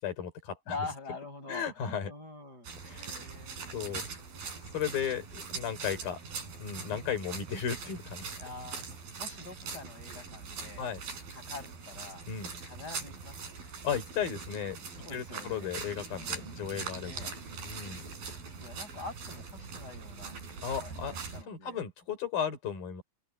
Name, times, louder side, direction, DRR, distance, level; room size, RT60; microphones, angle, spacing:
voice 1, 0.0-0.9 1.5-2.1 2.8-3.3 3.7-4.2 4.7-6.2 6.6-8.4 10.8-11.0 12.3-12.5 13.8-14.8 15.1-17.3 17.6-18.1 20.6-21.2 21.5-23.0, left 8 dB, 75° left, 6.1 m, -35 dB
voice 2, 0.7-2.7 3.2-3.8 8.4-8.9 9.2-10.9 11.3-12.2 12.6-13.6 14.8-15.7 16.1-16.6 17.0-17.3 17.8-18.1 18.6-20.3 20.8-21.8, left 3 dB, 25° left, 7.8 m, -45 dB
sound 1, 2.6-21.4, right 5 dB, 80° right, 7.4 m, -42 dB
open air
omnidirectional pair, 4.2 m